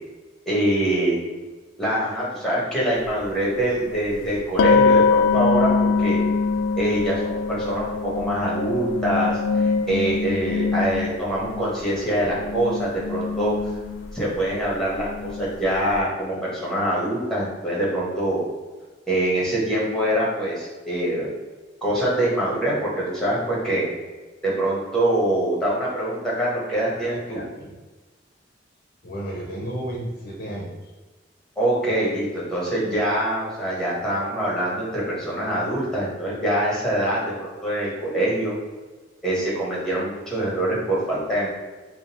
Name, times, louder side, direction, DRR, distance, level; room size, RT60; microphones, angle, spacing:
voice 1, 0.5-1.2 1.8-6.2 6.8-13.5 14.1-18.4 19.1-21.3 21.8-23.9 24.4-27.4 31.6-38.5 39.2-41.5, right 1 dB, 5° left, -5 dB, 1.2 m, -24 dB
sound 1, 3.1-3.2 4.6-12.0 12.3-16.0, left 4 dB, 90° left, 0.3 m, -23 dB
voice 2, 27.0-27.7 29.0-30.9, right 1 dB, 50° left, -3 dB, 0.7 m, -33 dB
3.7 x 2.3 x 4.1 m, 1.3 s
head